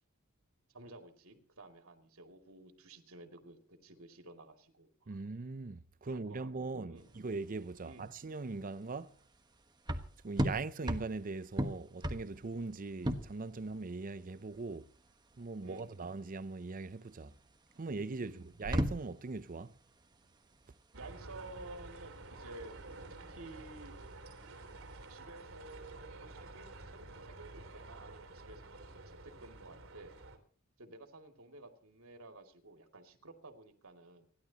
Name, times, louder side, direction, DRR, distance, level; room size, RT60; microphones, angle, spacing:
voice 1, 0.7-5.2 6.1-7.1 7.8-8.1 15.6-16.0 18.2-18.5 20.9-22.7 23.3-23.9 25.1-30.2 30.8-34.3, right 2 dB, 85° right, 2.5 m, -53 dB
voice 2, 5.1-9.2 10.2-14.9 15.4-17.4 17.8-19.7, right 3 dB, 40° right, 0.6 m, -40 dB
sound 1, 7.0-25.2, equal, 20° right, 1.3 m, -40 dB
sound 2, 20.9-30.4, right 2 dB, 70° right, 3.4 m, -50 dB
29.5 x 11.5 x 2.9 m
head